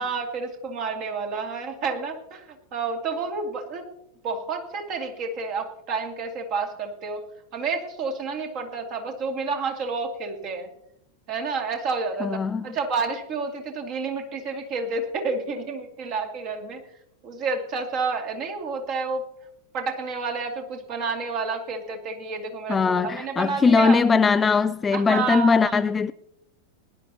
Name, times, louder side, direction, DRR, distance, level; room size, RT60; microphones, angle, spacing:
voice 1, 0.0-3.9 4.2-7.2 7.5-10.7 11.3-16.8 17.2-19.2 19.7-24.0 24.9-25.8, right 4 dB, 40° right, 2.3 m, -30 dB
voice 2, 12.2-12.7 22.7-26.1, left 5 dB, 15° left, 0.3 m, -20 dB
19.5 x 11.0 x 2.8 m
figure-of-eight pair, 90°, 0 cm